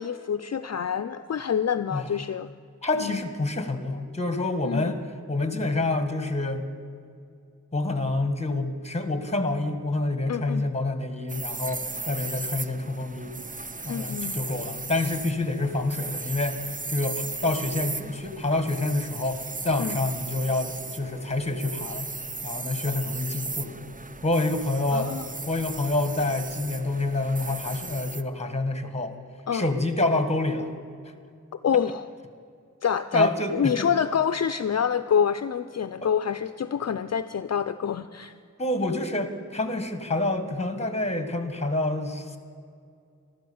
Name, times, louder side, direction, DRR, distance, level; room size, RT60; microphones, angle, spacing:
voice 1, 0.0-2.5 3.0-3.2 4.6-4.9 10.3-10.7 13.9-14.4 19.8-20.0 24.9-25.2 29.5-29.7 31.6-32.1 32.8-38.3, left 7 dB, 60° left, 11 dB, 0.4 m, -27 dB
voice 2, 2.8-5.0 5.3-6.7 7.7-13.3 13.8-22.1 22.4-23.9 24.2-25.1 25.5-29.1 29.5-30.7 33.1-33.9 36.0-36.1 38.6-42.4, left 2 dB, 20° left, 8 dB, 1.5 m, -27 dB
sound 1, 11.3-28.2, right 3 dB, 25° right, 0.6 m, -36 dB
14.0 x 12.5 x 7.1 m, 2.4 s
wide cardioid pair, 65°, 31 cm